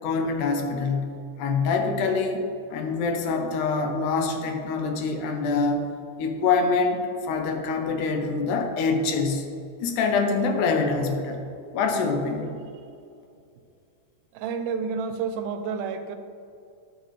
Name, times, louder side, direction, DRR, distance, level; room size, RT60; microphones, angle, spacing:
voice 1, 0.0-5.9 6.2-9.5 9.8-11.4 11.7-12.5, left 4 dB, 80° left, 4 dB, 2.2 m, -25 dB
voice 2, 14.3-16.2, right 5 dB, 85° right, 8 dB, 2.2 m, -30 dB
12.0 x 6.6 x 3.2 m, 2.5 s
omnidirectional pair, 3.6 m